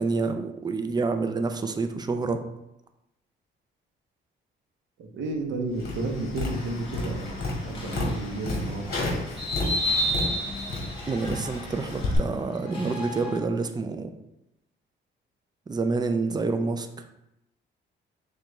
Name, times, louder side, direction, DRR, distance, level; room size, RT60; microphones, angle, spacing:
voice 1, 0.0-2.4 11.1-14.1 15.7-17.0, right 3 dB, 20° right, 7 dB, 0.5 m, -28 dB
voice 2, 5.0-8.9, right 2 dB, 75° right, 3 dB, 0.9 m, -32 dB
Tap, 5.8-12.2, left 2 dB, 50° left, 1.7 m, -32 dB
sound 1, 6.5-13.4, equal, 25° left, 1.4 m, -33 dB
6.6 x 2.4 x 3.1 m, 0.87 s
cardioid pair, 90°, 20 cm